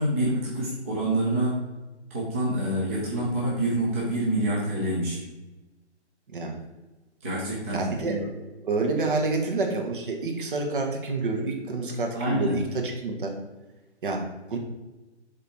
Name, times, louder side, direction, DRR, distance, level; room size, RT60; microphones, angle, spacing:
voice 1, 0.0-1.6 2.1-5.2 7.2-8.2 12.1-12.6, right 1 dB, 10° right, -6 dB, 0.5 m, -27 dB
voice 2, 6.3-6.6 7.7-8.3 8.6-13.4 14.0-14.6, right 3 dB, 45° right, 2 dB, 1.4 m, -28 dB
7.2 x 3.7 x 4.4 m, 1.1 s
hypercardioid pair, 155°, 35 cm